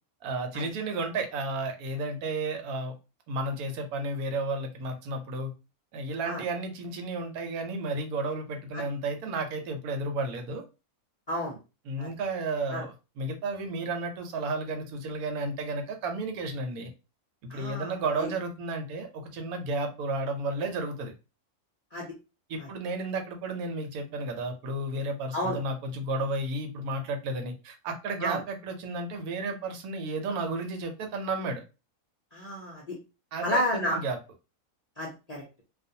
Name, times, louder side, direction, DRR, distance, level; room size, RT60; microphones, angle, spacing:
voice 1, 0.2-2.9 3.3-5.5 5.9-10.6 11.9-16.9 17.4-21.1 22.5-31.6 33.3-34.2, right 2 dB, 85° right, 5 dB, 1.1 m, -32 dB
voice 2, 17.5-18.3 21.9-22.1 22.6-22.7 25.3-25.6 28.2-28.4 32.3-33.0 33.4-34.0 35.0-35.4, equal, 65° left, -3 dB, 0.4 m, -31 dB
2.4 x 2.2 x 2.7 m, 0.29 s
omnidirectional pair, 1.5 m